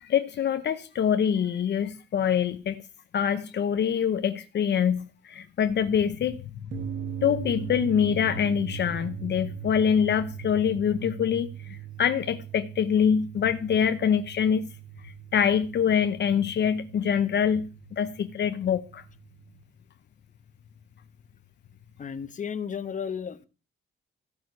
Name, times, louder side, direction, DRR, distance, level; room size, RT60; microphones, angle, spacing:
voice 1, 0.0-2.8 3.1-6.4 7.2-14.7 15.3-19.0, left 8 dB, 55° left, 0.8 m, -25 dB
sound 1, 6.7-19.6, right 11 dB, 60° right, 1.2 m, -40 dB
voice 2, 22.0-23.4, left 7 dB, 35° left, 1.1 m, -33 dB
14.5 x 6.3 x 9.6 m
cardioid pair, 140°, 21 cm